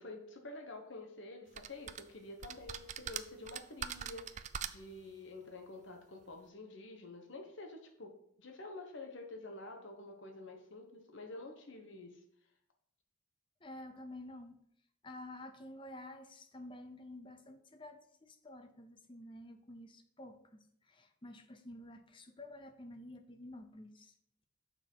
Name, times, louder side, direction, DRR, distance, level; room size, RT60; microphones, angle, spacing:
voice 1, 0.0-8.1 8.4-12.2, left 2 dB, 60° left, 3 dB, 1.1 m, -49 dB
sound 1, 1.6-2.0 2.4-5.0, right 8 dB, 35° right, 0.3 m, -42 dB
voice 2, 13.6-14.6 15.0-24.1, left 1 dB, 25° left, 8 dB, 0.7 m, -50 dB
7.0 x 5.9 x 5.5 m, 0.71 s
head